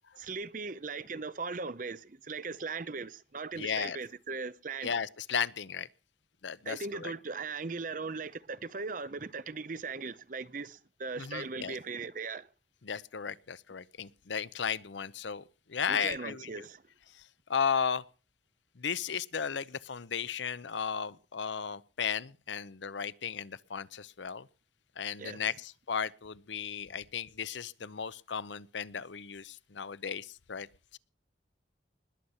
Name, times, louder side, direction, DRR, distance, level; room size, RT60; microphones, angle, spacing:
voice 1, 0.2-4.9 6.6-12.5 15.9-16.8 25.2-25.4, right 4 dB, 45° right, 0.7 m, -39 dB
voice 2, 3.6-4.0 4.8-5.9 6.4-7.1 11.2-11.8 12.8-15.4 15.7-16.5 17.1-17.2 17.5-18.0 18.8-24.5 25.0-30.7 30.9-31.0, left 7 dB, 80° left, 0.7 m, -35 dB
20.5 x 8.1 x 5.6 m
head